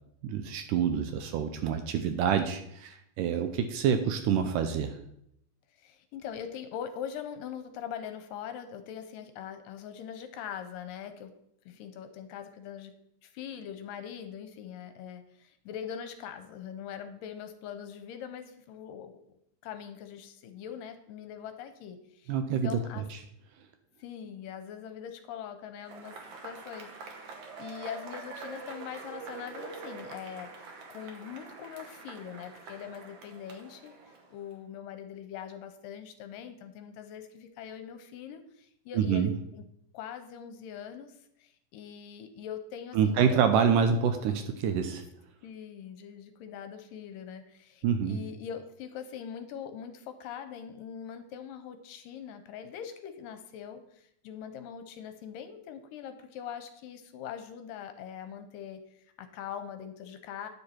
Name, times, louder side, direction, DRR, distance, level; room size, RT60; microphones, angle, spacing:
voice 1, 0.2-5.0 22.3-22.8 38.9-39.3 42.9-45.0 47.8-48.2, right 7 dB, 80° right, 7 dB, 2.0 m, -27 dB
voice 2, 5.7-11.3 11.7-12.9 13.2-19.2 19.6-23.1 24.0-26.9 27.3-33.9 34.3-39.6 39.9-43.4 45.4-58.8 59.2-60.5, left 8 dB, 80° left, 8 dB, 2.2 m, -42 dB
Cheering / Applause / Crowd, 25.8-34.5, right 4 dB, 65° right, 2.2 m, -45 dB
9.7 x 6.8 x 4.4 m, 0.75 s
omnidirectional pair, 4.1 m